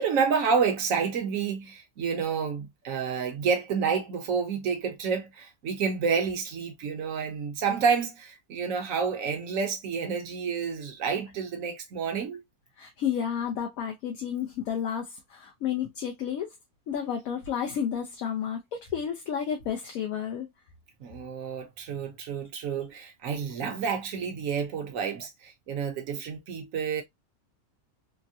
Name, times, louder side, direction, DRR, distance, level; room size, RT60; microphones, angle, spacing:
voice 1, 0.0-12.4 21.0-27.0, right 6 dB, 65° right, 1.2 m, -29 dB
voice 2, 12.8-16.5 16.9-20.5, left 8 dB, 75° left, 1.0 m, -31 dB
3.5 x 2.1 x 2.6 m
omnidirectional pair, 1.5 m